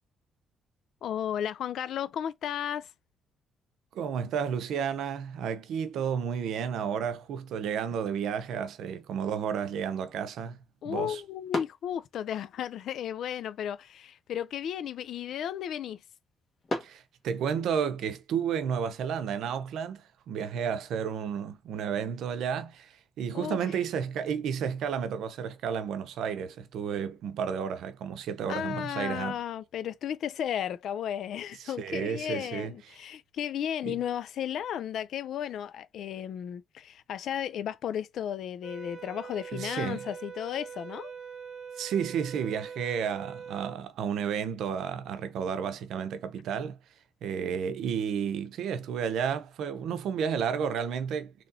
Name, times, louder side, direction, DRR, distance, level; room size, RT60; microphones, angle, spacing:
voice 1, 1.0-2.9 10.8-16.0 23.3-23.8 28.5-41.1, left 9 dB, 60° left, 0.3 m, -34 dB
voice 2, 3.9-10.6 10.8-11.2 16.8-29.4 31.6-33.0 33.8-34.0 39.5-40.1 41.8-46.8 47.2-51.3, right 7 dB, 70° right, 0.7 m, -32 dB
sound 1, 7.8-17.8, left 2 dB, 30° left, 1.5 m, -44 dB
sound 2, 38.6-43.8, right 7 dB, 45° right, 0.9 m, -43 dB
3.9 x 2.9 x 2.7 m
cardioid pair, 150°, 0 cm